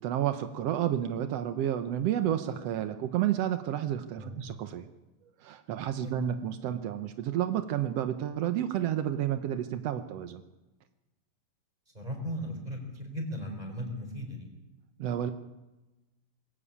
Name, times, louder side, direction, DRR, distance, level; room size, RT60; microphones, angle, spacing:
voice 1, 0.0-4.8 5.4-10.4 15.0-15.3, right 11 dB, 85° right, 9 dB, 1.4 m, -30 dB
voice 2, 11.9-14.5, equal, 10° right, 2 dB, 4.4 m, -37 dB
21.0 x 17.0 x 8.6 m, 1.1 s
omnidirectional pair, 4.1 m